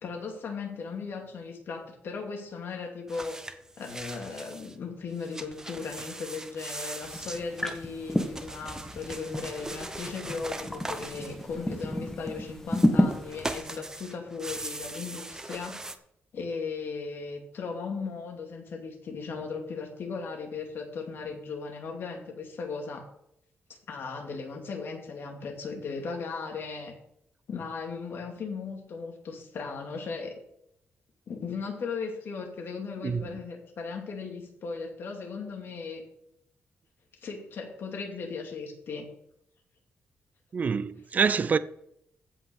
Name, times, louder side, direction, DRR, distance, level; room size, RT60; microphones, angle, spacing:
voice 1, 0.0-3.4 3.8-15.8 16.3-23.1 23.9-26.9 27.5-30.4 31.3-36.0 37.2-39.1, left 4 dB, 60° left, 2.7 m, -37 dB
sound 1, 3.1-4.7 5.1-12.1 12.6-15.9, right 2 dB, 15° right, 0.8 m, -40 dB
sound 2, 7.0-13.6, left 1 dB, 10° left, 1.5 m, -31 dB
voice 2, 33.0-33.4 40.5-41.6, right 5 dB, 40° right, 0.5 m, -26 dB
15.5 x 5.7 x 5.4 m
wide cardioid pair, 140°, 4 cm